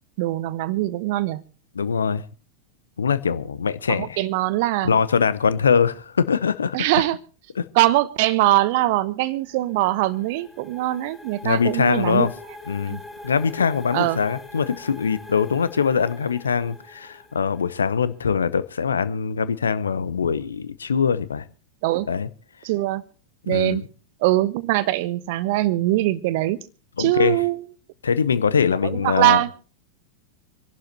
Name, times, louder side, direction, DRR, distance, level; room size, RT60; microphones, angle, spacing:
voice 1, 0.2-1.4 3.9-4.9 6.7-7.2 7.7-12.3 12.9-13.0 13.9-14.2 21.8-22.1 22.6-23.0 23.5-23.8 24.2-26.6 27.0-27.6 28.8-29.5, right 16 dB, 50° right, 1.0 m, -22 dB
voice 2, 1.8-2.2 3.0-4.2 4.8-6.8 7.6-7.7 11.4-12.3 12.7-21.4 22.1-22.3 23.5-23.8 27.0-27.4 28.0-29.4, left 6 dB, 70° left, 0.8 m, -22 dB
sound 1, 9.3-18.0, left 2 dB, 10° left, 4.1 m, -43 dB
26.5 x 11.5 x 2.9 m
figure-of-eight pair, 90°, 0 cm